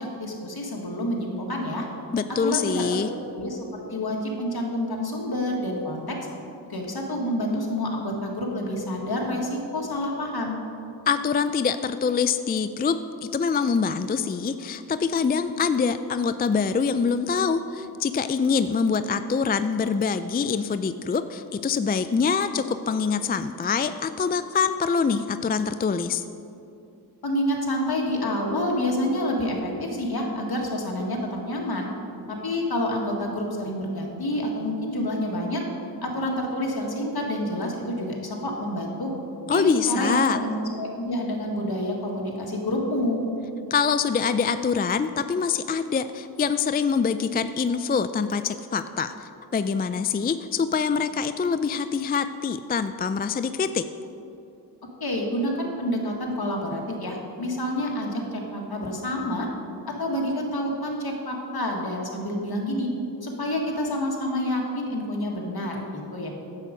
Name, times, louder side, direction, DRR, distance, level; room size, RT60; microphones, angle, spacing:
voice 1, 0.0-1.9 2.4-3.0 3.3-3.6 3.9-6.2 6.7-10.6 27.2-31.9 32.3-35.6 36.0-39.1 39.5-43.2 55.0-59.5 60.0-62.9 63.2-66.3, left 1 dB, 65° left, 0 dB, 1.8 m, -28 dB
voice 2, 2.1-3.1 11.1-26.2 39.5-40.4 43.7-53.9, left 5 dB, 25° left, 11 dB, 0.3 m, -25 dB
9.7 x 7.7 x 5.1 m, 2.7 s
cardioid pair, 40°, 41 cm